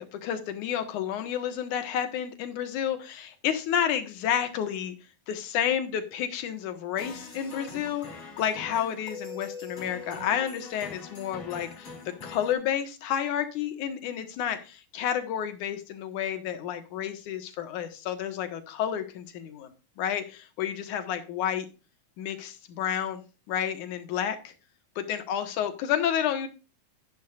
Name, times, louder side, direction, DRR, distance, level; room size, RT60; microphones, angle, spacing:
voice 1, 0.0-5.0 5.3-8.1 8.4-11.9 12.2-21.7 22.2-24.5 25.0-26.5, left 9 dB, 65° left, 8 dB, 2.8 m, -30 dB
sound 1, 7.0-12.5, left 4 dB, 40° left, 4.7 m, -42 dB
11.5 x 11.5 x 2.5 m, 0.31 s
omnidirectional pair, 4.0 m